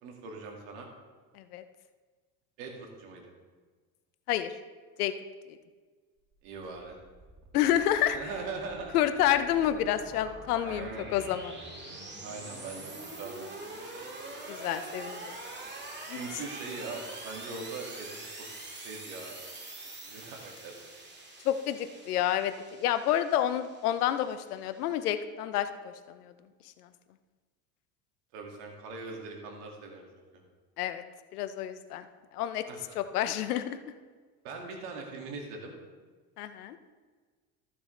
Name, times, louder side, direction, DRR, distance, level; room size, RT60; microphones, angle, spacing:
voice 1, 0.0-0.9 2.6-3.3 6.4-7.0 8.1-9.0 10.7-11.1 12.2-13.4 16.1-18.2 18.8-19.4 20.0-20.8 28.3-30.0 30.3-30.4 32.7-33.0 34.4-35.7, right 4 dB, 70° right, 1 dB, 2.3 m, -41 dB
sound 1, 6.3-25.1, right 2 dB, 25° right, 2.4 m, -45 dB
voice 2, 7.5-8.2 8.9-11.5 14.5-15.4 16.1-16.2 21.4-22.5 22.8-25.7 26.1-26.3 30.8-31.0 31.3-32.0 32.3-32.6 33.0-33.8 36.4-36.8, left 11 dB, 85° left, 11 dB, 0.8 m, -29 dB
14.0 x 7.0 x 3.2 m, 1.4 s
hypercardioid pair, 75°, 44 cm